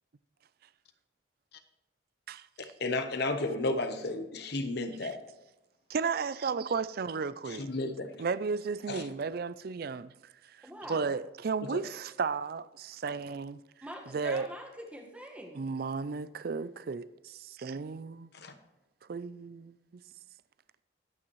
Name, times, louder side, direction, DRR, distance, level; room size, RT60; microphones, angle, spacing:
voice 1, 2.6-5.2 7.6-8.1 8.9-9.0 11.7-11.8 18.4-18.5, left 2 dB, 55° left, 1.0 m, -33 dB
voice 2, 5.9-7.7 8.2-10.1 10.6-13.6 14.1-14.5 15.5-18.3 19.1-19.7, right 5 dB, 50° right, 0.4 m, -34 dB
voice 3, 10.6-11.1 13.8-15.7, equal, 5° right, 1.5 m, -44 dB
21.5 x 8.7 x 3.1 m
head